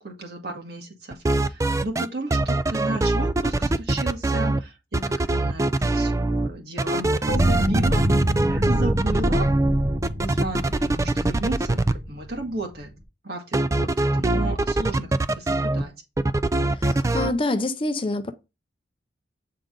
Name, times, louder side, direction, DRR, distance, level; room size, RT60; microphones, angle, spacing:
voice 1, 0.0-8.1 8.5-9.5 10.2-12.9 13.2-15.9, right 2 dB, 60° right, 1.7 m, -34 dB
sound 1, 1.1-2.1 2.3-4.6 4.9-6.5 6.8-11.9 13.5-15.8 16.2-17.3, right 2 dB, 15° right, 0.3 m, -22 dB
sound 2, 7.3-13.0, equal, 85° right, 1.5 m, -26 dB
voice 2, 16.8-18.3, left 2 dB, 30° left, 0.6 m, -26 dB
8.4 x 3.8 x 3.8 m
head